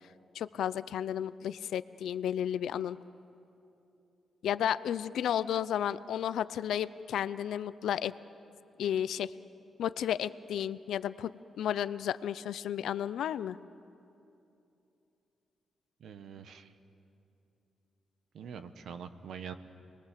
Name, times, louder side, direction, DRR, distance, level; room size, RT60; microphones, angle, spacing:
voice 1, 0.3-3.0 4.4-8.1 8.8-9.3 9.8-11.3 11.6-13.6, left 10 dB, 80° left, 15 dB, 0.6 m, -32 dB
voice 2, 16.0-16.7 18.3-19.6, right 7 dB, 65° right, 10 dB, 1.1 m, -44 dB
28.5 x 21.5 x 7.5 m, 2.8 s
wide cardioid pair, 170°, 0 cm